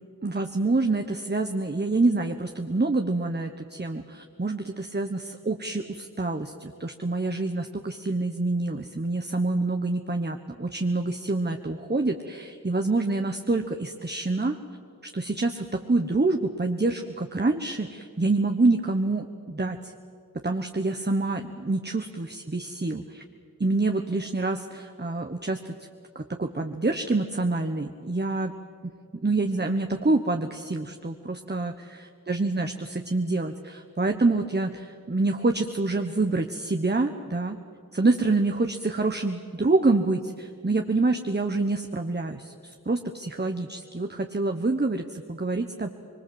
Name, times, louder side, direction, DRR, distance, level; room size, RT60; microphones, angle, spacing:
voice 1, 0.2-14.6 15.1-19.9 20.4-23.2 23.6-25.7 26.1-28.5 29.2-31.7 32.3-37.6 37.9-45.9, right 3 dB, 30° right, 5 dB, 1.2 m, -26 dB
24.5 x 23.5 x 8.0 m, 2.3 s
wide cardioid pair, 50°, 36 cm